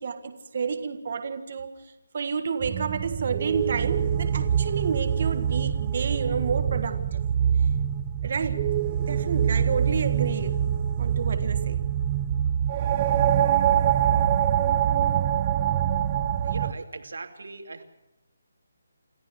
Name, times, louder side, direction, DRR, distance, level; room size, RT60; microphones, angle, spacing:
voice 1, 0.0-1.8 2.1-7.2 8.2-8.7 9.0-10.7 11.0-11.8, right 5 dB, 40° right, 8 dB, 1.6 m, -30 dB
sound 1, 2.6-16.7, right 9 dB, 20° right, 0.6 m, -24 dB
voice 2, 16.4-17.8, right 3 dB, 75° right, 5 dB, 2.8 m, -39 dB
28.0 x 14.5 x 6.5 m, 0.95 s
hypercardioid pair, 175°, 0 cm